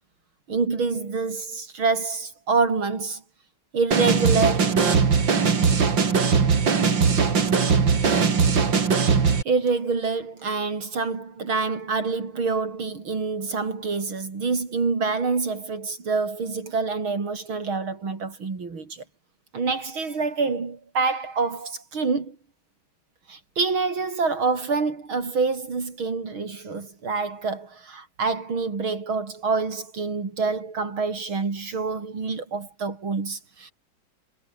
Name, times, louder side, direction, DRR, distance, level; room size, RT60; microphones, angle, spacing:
voice 1, 0.5-3.2 3.7-4.8 8.2-8.3 9.4-19.0 19.5-22.4 23.3-33.7, right 4 dB, 80° right, 4.6 m, -26 dB
sound 1, 3.9-9.4, right 5 dB, 65° right, 3.3 m, -20 dB
omnidirectional pair, 2.2 m